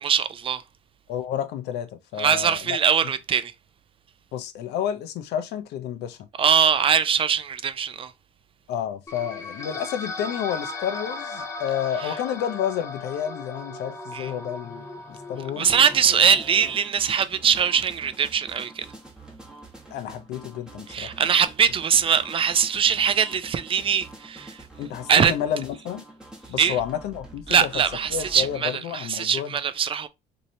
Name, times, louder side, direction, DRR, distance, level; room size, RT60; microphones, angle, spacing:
voice 1, 0.0-0.6 2.2-3.5 6.4-8.1 12.0-12.1 14.1-14.3 15.6-18.9 20.9-24.6 25.1-25.3 26.6-26.8 27.5-30.1, right 7 dB, 30° right, 0.3 m, -22 dB
voice 2, 1.1-2.8 4.3-6.2 8.7-14.9 15.3-15.7 19.9-21.1 24.8-26.0 26.5-27.7 28.1-29.5, left 9 dB, 80° left, 0.6 m, -30 dB
sound 1, 9.1-16.7, left 3 dB, 15° left, 0.6 m, -37 dB
sound 2, 15.7-28.6, right 1 dB, 5° right, 0.9 m, -46 dB
3.1 x 2.7 x 2.7 m
cardioid pair, 110°, 17 cm